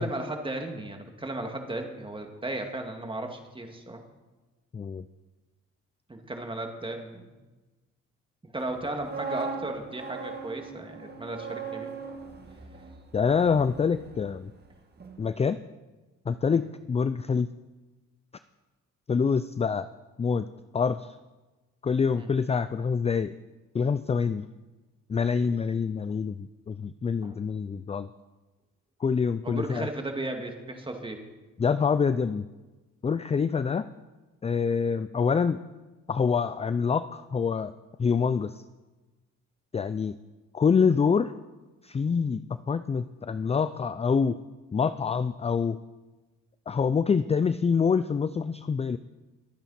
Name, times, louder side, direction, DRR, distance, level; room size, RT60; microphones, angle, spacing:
voice 1, 0.0-4.0 6.1-7.4 8.4-11.9 16.5-16.6 22.2-22.3 27.2-27.4 29.4-31.2, right 2 dB, 15° right, 3 dB, 2.3 m, -35 dB
voice 2, 4.7-5.1 13.1-14.5 15.2-15.6 16.3-17.5 19.1-19.9 20.2-20.5 20.7-21.2 21.8-23.3 23.7-24.5 25.1-28.1 29.0-29.9 31.6-32.5 33.0-33.8 34.4-35.6 36.1-37.7 38.0-38.6 39.7-40.2 40.5-41.3 41.8-42.4 42.7-44.4 44.7-45.8 46.7-49.0, left 6 dB, 20° left, 13 dB, 0.4 m, -26 dB
sound 1, 8.8-14.7 15.0-15.2, right 4 dB, 35° right, 1.7 m, -39 dB
23.0 x 9.1 x 4.3 m, 1.2 s
cardioid pair, 90°, 30 cm